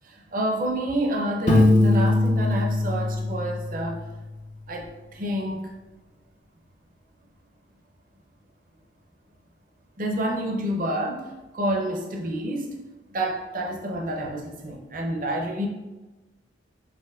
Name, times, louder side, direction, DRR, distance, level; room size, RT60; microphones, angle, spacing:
voice 1, 0.0-4.0 4.7-5.7 10.0-12.7 13.1-15.7, right 1 dB, 45° right, 1 dB, 0.6 m, -28 dB
Piano, 1.5-4.2, left 2 dB, 40° left, 0.6 m, -21 dB
6.0 x 2.6 x 2.3 m, 1.1 s
head